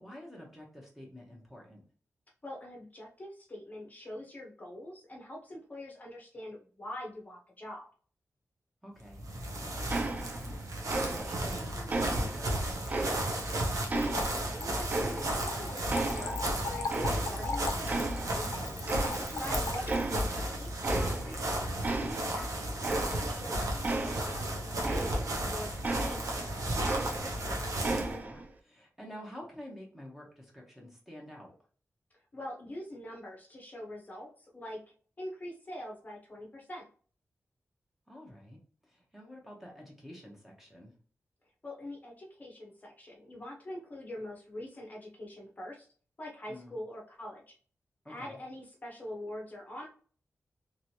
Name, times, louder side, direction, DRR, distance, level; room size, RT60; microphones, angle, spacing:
voice 1, 0.0-1.8 8.8-9.3 9.6-13.2 19.3-19.7 27.2-31.5 38.1-40.9 46.5-46.8 48.0-48.4, equal, 5° right, -2 dB, 0.8 m, -49 dB
voice 2, 2.4-7.9 13.9-18.7 19.2-21.7 21.9-26.3 32.3-34.8 35.2-36.9 41.6-45.9 46.2-47.5 48.0-49.9, left 1 dB, 30° left, -1 dB, 0.7 m, -44 dB
sound 1, 9.1-28.1, right 1 dB, 85° right, 0.8 m, -34 dB
sound 2, 9.9-10.6 10.9-11.5 11.9-13.5 13.9-15.6 15.9-17.5 17.9-18.5 18.9-19.5 19.9-20.4 20.8-21.5 21.8-25.4 25.8-27.5 27.8-28.5, right 2 dB, 30° right, 0.4 m, -35 dB
Splash splatter / Trickle dribble, 12.9-20.2, left 4 dB, 90° left, 0.5 m, -39 dB
3.1 x 3.0 x 2.7 m, 0.42 s
wide cardioid pair, 175°, 6 cm